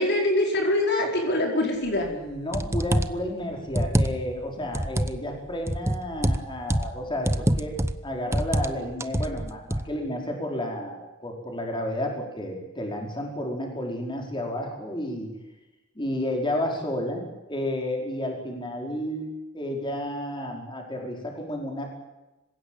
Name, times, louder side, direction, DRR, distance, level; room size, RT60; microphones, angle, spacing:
voice 1, 0.0-2.1, left 1 dB, 55° left, 1 dB, 4.9 m, -24 dB
sound 1, 2.0-2.1 2.5-3.2 3.7-4.4 4.7-5.2 5.7-7.0 7.3-8.0 8.3-8.7 9.0-9.9, right 1 dB, 15° right, 0.9 m, -25 dB
voice 2, 2.1-7.8 8.0-15.3 15.9-21.9, left 1 dB, 25° left, 1 dB, 5.0 m, -31 dB
26.0 x 16.5 x 9.0 m, 1.0 s
head